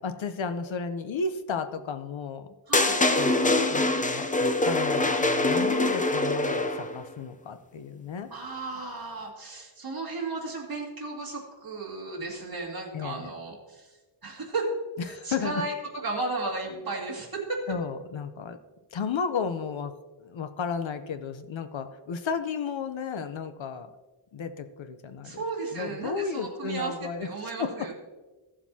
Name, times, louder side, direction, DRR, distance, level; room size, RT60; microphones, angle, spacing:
voice 1, 0.0-2.5 3.2-8.3 12.9-13.3 15.1-15.6 17.7-18.6 18.9-19.9 20.2-23.9 24.3-25.4 25.7-27.9, left 5 dB, 65° left, 9 dB, 0.8 m, -33 dB
sound 1, 2.7-7.0, left 2 dB, 15° left, 0.6 m, -24 dB
voice 2, 2.7-3.0 8.3-13.9 14.2-14.7 15.0-17.6 25.2-26.9 27.2-27.9, right 3 dB, 45° right, -2 dB, 2.4 m, -34 dB
16.0 x 7.4 x 2.8 m, 1.2 s
wide cardioid pair, 165°, 50 cm